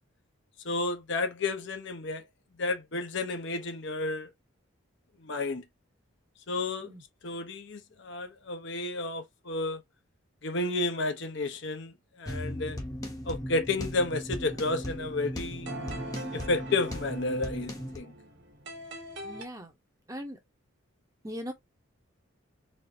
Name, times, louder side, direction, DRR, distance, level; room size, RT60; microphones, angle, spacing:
voice 1, 0.6-2.2 2.6-4.3 5.2-5.6 6.5-6.9 7.2-9.8 10.4-12.8 13.3-15.7 16.3-18.1, left 2 dB, 55° left, 0.7 m, -31 dB
sound 1, 12.3-18.0, equal, 15° left, 0.8 m, -37 dB
sound 2, 14.4-19.4, right 1 dB, 55° right, 1.3 m, -43 dB
voice 2, 19.2-19.7 20.1-20.4 21.2-21.5, equal, 15° right, 0.8 m, -39 dB
4.3 x 2.6 x 2.6 m
head